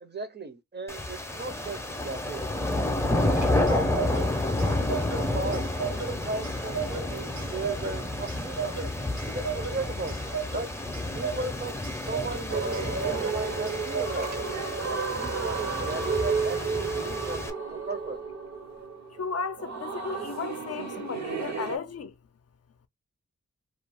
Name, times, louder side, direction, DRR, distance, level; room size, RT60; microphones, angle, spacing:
voice 1, 0.0-2.4 3.4-4.3 4.6-8.8 9.3-10.7 11.1-14.5 14.9-18.2, right 3 dB, 35° right, 0.6 m, -37 dB
sound 1, 0.9-17.5, left 1 dB, 10° left, 0.5 m, -30 dB
Clock, 3.1-14.7, right 6 dB, 85° right, 1.0 m, -37 dB
Church choir, 12.5-21.8, right 5 dB, 70° right, 0.8 m, -32 dB
voice 2, 19.2-22.1, left 5 dB, 55° left, 0.4 m, -34 dB
2.4 x 2.3 x 3.3 m
wide cardioid pair, 95°, 29 cm